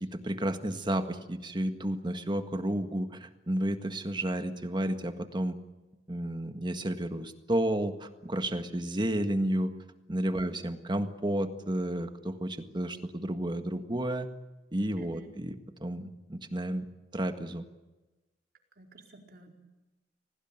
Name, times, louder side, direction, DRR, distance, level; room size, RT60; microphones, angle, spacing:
voice 1, 0.0-5.6 6.1-9.7 10.1-14.3 14.7-16.9 17.1-17.6, right 1 dB, 25° right, 8 dB, 1.7 m, -32 dB
voice 2, 18.8-19.5, right 1 dB, 60° right, 2 dB, 4.4 m, -53 dB
27.5 x 18.5 x 9.1 m, 1.1 s
head